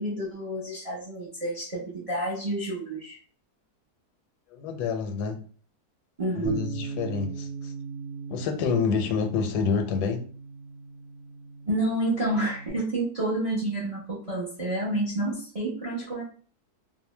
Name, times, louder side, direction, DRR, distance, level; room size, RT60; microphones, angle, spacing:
voice 1, 0.0-3.2 6.2-7.0 11.6-16.2, right 1 dB, 35° right, 0.5 m, -29 dB
voice 2, 4.5-5.4 6.4-7.7 8.3-10.2, left 5 dB, 85° left, 1.1 m, -28 dB
Bass guitar, 6.5-12.7, right 4 dB, 85° right, 1.1 m, -39 dB
2.7 x 2.0 x 3.1 m
omnidirectional pair, 1.7 m